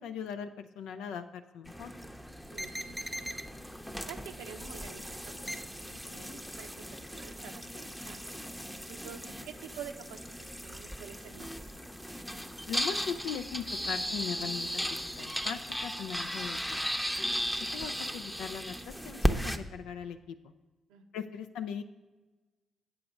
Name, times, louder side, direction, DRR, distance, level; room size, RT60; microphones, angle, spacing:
voice 1, 0.0-1.9 12.7-16.8 17.6-20.5 21.1-21.8, left 7 dB, 80° left, 8 dB, 0.3 m, -39 dB
sound 1, 1.7-19.6, equal, ahead, 0.7 m, -36 dB
voice 2, 2.5-3.4 4.1-5.3 5.6-8.4 8.9-11.7 17.4-17.5 20.9-21.0, right 8 dB, 85° right, 5 dB, 0.6 m, -48 dB
7.9 x 5.7 x 5.1 m, 1.2 s
hypercardioid pair, 45°, 0 cm